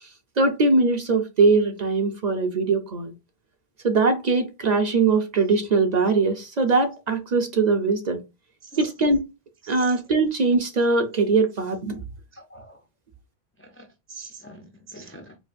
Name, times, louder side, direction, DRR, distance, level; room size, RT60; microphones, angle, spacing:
voice 1, 0.4-3.1 3.8-8.2 8.8-9.3 9.7-12.0, right 3 dB, 50° right, 0.7 m, -21 dB
voice 2, 12.3-12.8 13.8-15.4, right 2 dB, 20° left, 0.3 m, -43 dB
4.9 x 2.4 x 2.5 m
omnidirectional pair, 1.1 m